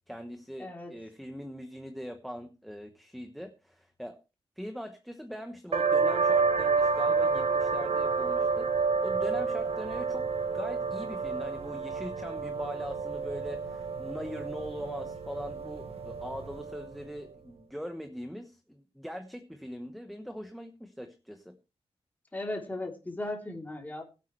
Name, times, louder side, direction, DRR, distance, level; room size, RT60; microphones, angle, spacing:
voice 1, 0.0-4.2 4.6-10.3 10.5-21.6, equal, ahead, 7 dB, 1.1 m, -41 dB
voice 2, 0.6-0.9 22.3-24.0, left 2 dB, 15° left, 1 dB, 3.3 m, -36 dB
sound 1, 5.7-17.0, right 4 dB, 75° right, 1.4 m, -29 dB
20.5 x 8.3 x 3.2 m, 0.30 s
wide cardioid pair, 160°, 10 cm